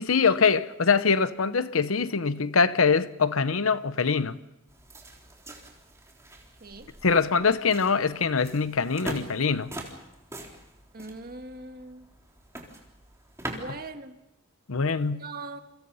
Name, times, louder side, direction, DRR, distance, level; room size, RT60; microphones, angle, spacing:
voice 1, 0.0-4.4 7.0-9.7 14.7-15.2, left 5 dB, 75° left, 0.9 m, -23 dB
sound 1, 4.7-13.9, right 1 dB, 15° right, 3.7 m, -43 dB
voice 2, 6.6-6.9 10.9-12.1 13.5-14.2 15.1-15.6, right 3 dB, 45° right, 1.8 m, -40 dB
29.5 x 24.5 x 5.6 m
head